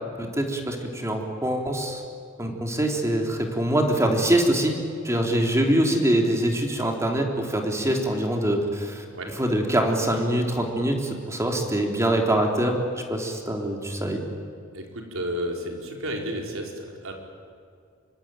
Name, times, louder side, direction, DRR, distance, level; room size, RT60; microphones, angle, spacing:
voice 1, 0.2-2.0 2.4-4.8 5.0-9.0 9.4-12.8 13.1-14.2, right 1 dB, 15° right, 2 dB, 3.5 m, -24 dB
voice 2, 14.7-17.1, equal, 85° right, 1 dB, 4.7 m, -32 dB
26.0 x 23.5 x 9.1 m, 2.3 s
head